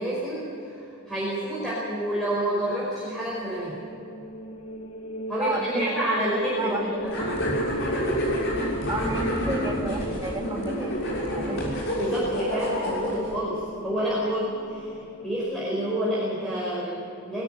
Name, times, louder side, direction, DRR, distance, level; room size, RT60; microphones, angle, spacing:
voice 1, 0.0-3.8 5.3-7.3 12.0-14.9 15.2-17.4, right 1 dB, 5° left, -8 dB, 5.1 m, -29 dB
sound 1, 3.3-15.3, equal, 90° left, 2.4 m, -35 dB
voice 2, 5.4-7.5 8.9-11.7, right 1 dB, 20° right, 0 dB, 2.5 m, -32 dB
sound 2, 7.1-13.3, equal, 60° left, 6.7 m, -29 dB
22.5 x 13.0 x 9.3 m, 2.8 s
head